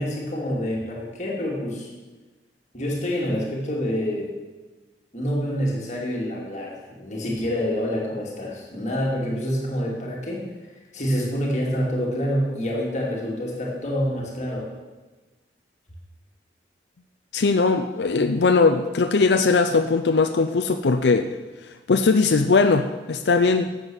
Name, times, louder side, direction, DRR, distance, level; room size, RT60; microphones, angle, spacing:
voice 1, 0.0-1.9 2.7-4.3 5.1-10.5 10.9-14.7, equal, 40° left, -3 dB, 2.5 m, -27 dB
voice 2, 17.3-21.3 21.9-23.7, left 4 dB, 85° left, 7 dB, 0.6 m, -20 dB
12.0 x 7.7 x 6.3 m, 1.2 s
head